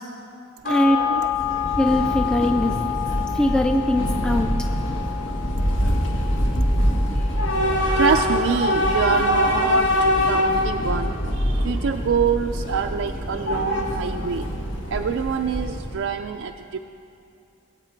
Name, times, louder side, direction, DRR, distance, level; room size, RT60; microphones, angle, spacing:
sound 1, 0.6-9.4 9.8-9.9, left 11 dB, 50° left, 2.5 m, -30 dB
voice 1, 0.6-1.3 7.1-7.2 7.8-9.9 10.3-14.5 14.9-16.8, right 6 dB, 80° right, 5 dB, 0.4 m, -25 dB
Train / Subway metro underground, 1.2-16.0, equal, 85° left, 1.8 m, -24 dB
voice 2, 1.8-2.7 3.3-4.5, left 1 dB, 5° left, 3 dB, 0.4 m, -21 dB
21.5 x 8.3 x 4.5 m, 2.6 s
head